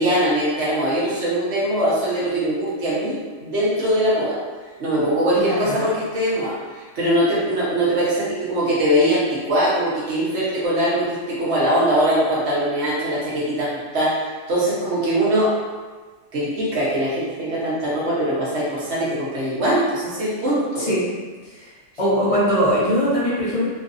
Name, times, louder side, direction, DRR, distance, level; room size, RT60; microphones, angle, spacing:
voice 1, 0.0-4.4 4.8-15.6 16.3-20.9, right 1 dB, 65° right, -8 dB, 1.3 m, -22 dB
voice 2, 5.3-5.8 20.8-21.0 22.0-23.7, equal, 30° left, -9 dB, 0.9 m, -20 dB
3.1 x 2.5 x 2.5 m, 1.4 s
omnidirectional pair, 1.3 m